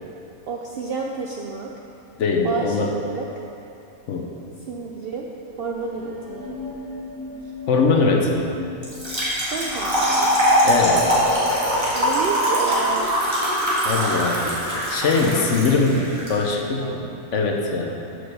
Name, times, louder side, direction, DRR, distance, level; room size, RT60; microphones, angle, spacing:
voice 1, 0.5-1.9 2.4-2.8 3.1-3.3 4.7-5.3 5.6-6.5 9.5-10.4 12.0-13.1 15.2-15.4 15.7-15.9 16.8-17.0, right 5 dB, 65° right, 0 dB, 0.6 m, -30 dB
voice 2, 2.2-2.9 4.1-4.3 7.7-8.5 10.6-11.1 13.8-14.6 14.9-17.0 17.3-18.0, left 4 dB, 60° left, 1 dB, 1.0 m, -21 dB
sound 1, 5.5-13.1, left 3 dB, 90° left, 2.3 m, -39 dB
Trickle dribble / Fill (with liquid), 8.8-16.3, equal, 20° right, 1.7 m, -22 dB
6.2 x 4.8 x 6.5 m, 2.7 s
omnidirectional pair, 1.5 m